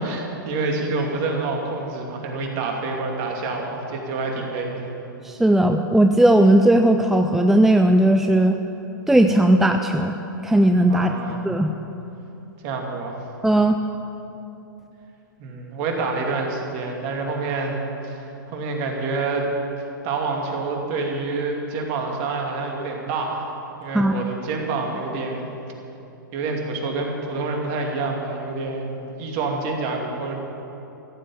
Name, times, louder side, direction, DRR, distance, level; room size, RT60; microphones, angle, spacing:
voice 1, 0.0-4.8 10.9-11.4 12.6-13.2 15.4-19.5 20.0-23.5 23.8-25.5 26.3-30.4, right 3 dB, 40° right, 1 dB, 2.6 m, -27 dB
voice 2, 5.2-8.6 9.1-10.2 10.4-11.1 11.4-11.7 13.4-13.8 23.9-24.1, right 1 dB, 5° right, 6 dB, 0.4 m, -17 dB
14.5 x 7.6 x 9.0 m, 2.9 s
figure-of-eight pair, 110°, 11 cm